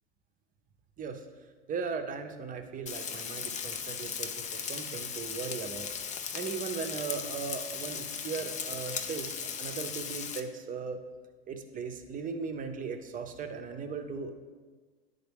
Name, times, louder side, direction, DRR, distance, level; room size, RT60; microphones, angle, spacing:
voice 1, 1.7-5.9 6.3-11.0 11.5-14.3, right 5 dB, 25° right, 6 dB, 0.7 m, -38 dB
Frying (food), 2.9-10.4, left 7 dB, 25° left, 0.5 m, -37 dB
10.0 x 3.9 x 3.5 m, 1.4 s
hypercardioid pair, 95°, 30 cm